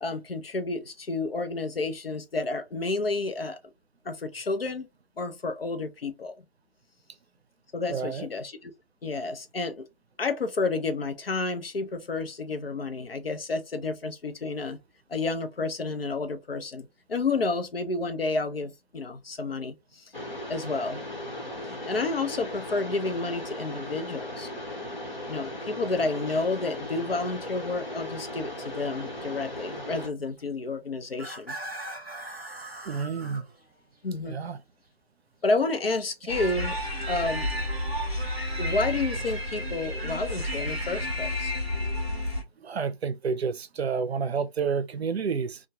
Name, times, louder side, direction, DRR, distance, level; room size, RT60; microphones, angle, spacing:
voice 1, 0.0-3.6 4.0-4.9 5.2-6.4 7.7-8.7 9.0-9.8 10.2-14.8 15.1-20.0 20.5-21.0 21.7-24.5 25.3-31.6 34.0-34.4 35.4-36.8 37.1-37.5 38.6-41.5, left 3 dB, 70° left, 0.6 m, -30 dB
voice 2, 7.9-8.3 32.9-33.4 34.3-34.6 42.6-45.6, right 5 dB, 85° right, 0.5 m, -29 dB
Mechanisms, 20.1-30.1, left 1 dB, 50° left, 1.1 m, -37 dB
sound 1, 26.4-26.6 27.0-27.2 27.7-27.8 29.7-29.8 31.0-34.2 37.4-38.9 40.2-40.5, right 1 dB, 20° left, 0.9 m, -41 dB
sound 2, 36.3-42.4, left 1 dB, 25° right, 0.7 m, -31 dB
2.2 x 2.2 x 2.7 m
figure-of-eight pair, 180°, 31 cm